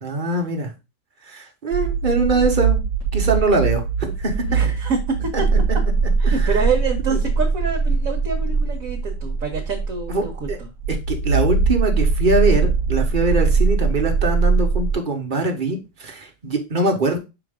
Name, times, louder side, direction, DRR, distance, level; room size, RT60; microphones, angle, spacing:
voice 1, 0.0-0.7 1.3-2.8 3.1-4.4 5.3-5.4 5.7-5.8 6.2-6.5 10.1-10.6 11.1-17.2, right 2 dB, 35° right, 3 dB, 1.2 m, -22 dB
sound 1, 1.7-14.9, right 4 dB, 90° left, 4.0 m, -21 dB
voice 2, 4.5-5.3 6.2-10.7, right 5 dB, 55° right, 1 dB, 1.3 m, -26 dB
6.0 x 4.5 x 3.6 m, 0.26 s
omnidirectional pair, 1.8 m